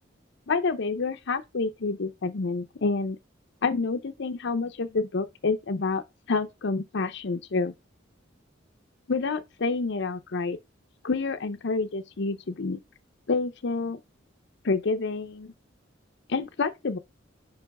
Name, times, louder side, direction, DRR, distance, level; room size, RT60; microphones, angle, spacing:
voice 1, 0.5-3.2 3.6-7.7 9.1-10.6 11.0-12.8 13.3-14.0 14.6-15.5 16.3-17.0, left 4 dB, 65° left, 0.6 m, -28 dB
5.4 x 4.6 x 5.4 m
head